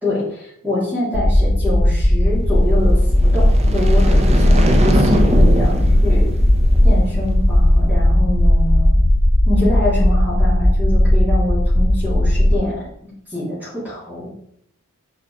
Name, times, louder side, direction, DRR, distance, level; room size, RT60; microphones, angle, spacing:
voice 1, 0.0-6.3 6.8-8.9 9.5-12.7 13.3-14.4, left 1 dB, 10° right, -11 dB, 3.2 m, -25 dB
sound 1, 1.1-12.5, left 1 dB, 15° left, 0.5 m, -15 dB
sound 2, 3.0-7.3, equal, 30° right, 0.9 m, -22 dB
7.1 x 5.0 x 5.1 m, 0.69 s
head